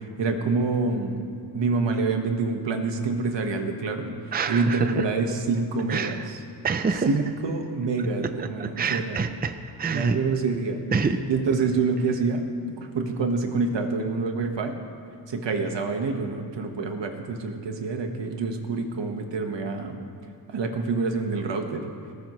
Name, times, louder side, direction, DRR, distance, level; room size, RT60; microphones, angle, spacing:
voice 1, 0.2-1.2 1.5-4.2 4.5-6.4 7.1-9.2 9.9-10.8 11.3-12.5 12.8-14.7 15.3-20.0 20.5-21.9, right 4 dB, 75° right, 4 dB, 1.5 m, -27 dB
voice 2, 4.3-5.0 5.9-6.2 6.6-7.1 8.4-9.5 9.8-10.2 10.9-11.2, right 5 dB, 20° right, 9 dB, 0.5 m, -26 dB
19.5 x 18.5 x 3.2 m, 2.7 s
wide cardioid pair, 150°, 43 cm